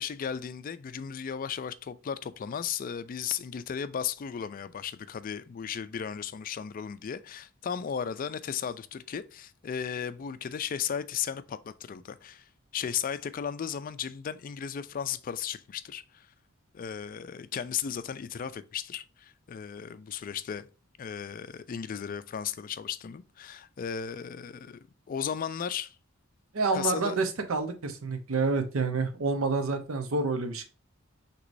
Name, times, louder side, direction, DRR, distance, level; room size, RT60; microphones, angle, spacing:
voice 1, 0.0-16.3 16.7-20.7 21.0-26.0 26.7-27.2, left 8 dB, 40° left, 0.3 m, -35 dB
voice 2, 26.5-30.6, right 3 dB, 85° right, 0.8 m, -28 dB
6.1 x 3.0 x 2.6 m
head